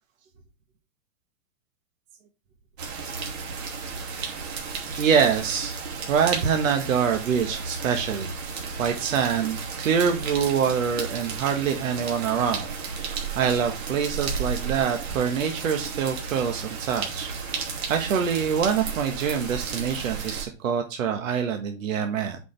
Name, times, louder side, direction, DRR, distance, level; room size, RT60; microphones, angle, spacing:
sound 1, 2.8-20.4, right 5 dB, 55° right, 2.7 m, -33 dB
voice 1, 5.0-5.8 6.1-8.3 8.8-12.7 13.0-17.3 17.9-22.4, right 7 dB, 75° right, 4 dB, 1.5 m, -25 dB
8.0 x 5.2 x 3.3 m, 0.31 s
hypercardioid pair, 165°, 39 cm